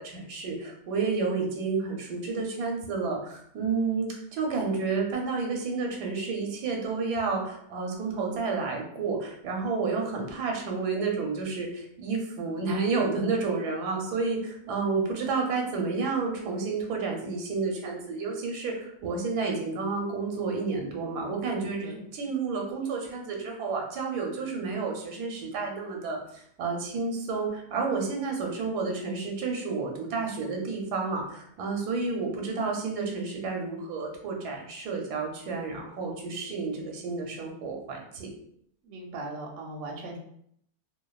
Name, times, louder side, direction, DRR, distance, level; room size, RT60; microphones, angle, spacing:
voice 1, 0.0-26.2 26.6-38.3, right 4 dB, 85° right, 1 dB, 1.2 m, -30 dB
voice 2, 38.8-40.2, right 2 dB, 70° right, 0 dB, 0.9 m, -38 dB
2.6 x 2.3 x 2.3 m, 0.70 s
omnidirectional pair, 1.7 m